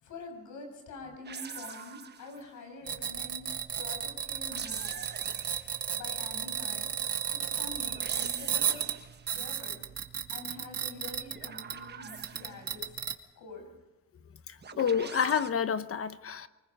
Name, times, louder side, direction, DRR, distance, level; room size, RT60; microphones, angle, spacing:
voice 1, 0.0-3.4 3.7-4.9 5.9-6.9 7.3-8.9 9.3-9.8 10.3-13.0 13.4-13.6, left 3 dB, 80° left, 7.1 m, -46 dB
sound 1, 1.2-2.5 4.3-5.9 7.7-9.3 11.1-12.8 14.6-15.5, right 6 dB, 35° right, 1.2 m, -44 dB
sound 2, 2.9-11.9 12.2-13.1, right 8 dB, 55° right, 1.8 m, -34 dB
voice 2, 14.5-16.5, left 7 dB, 50° left, 1.1 m, -29 dB
25.0 x 19.5 x 5.5 m
cardioid pair, 90°, 30 cm